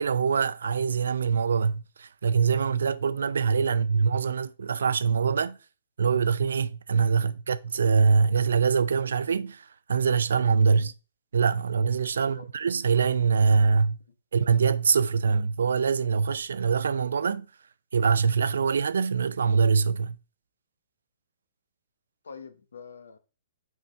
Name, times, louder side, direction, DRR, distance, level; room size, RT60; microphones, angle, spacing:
voice 1, 0.0-5.6 6.0-10.9 11.3-14.0 14.3-17.5 17.9-20.2, right 5 dB, 75° right, 0.4 m, -24 dB
voice 2, 12.1-12.5 22.2-23.2, left 6 dB, 75° left, 0.9 m, -46 dB
6.0 x 4.7 x 3.4 m
hypercardioid pair, 120°, 0 cm